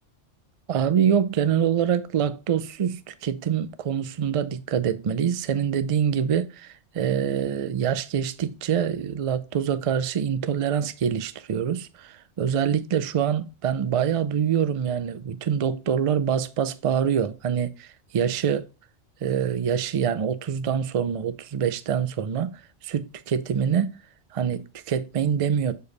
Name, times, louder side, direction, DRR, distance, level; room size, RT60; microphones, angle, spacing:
voice 1, 0.7-18.6 19.2-23.9 24.3-25.8, right 8 dB, 60° right, 0.3 m, -25 dB
6.9 x 4.5 x 3.2 m
omnidirectional pair, 1.2 m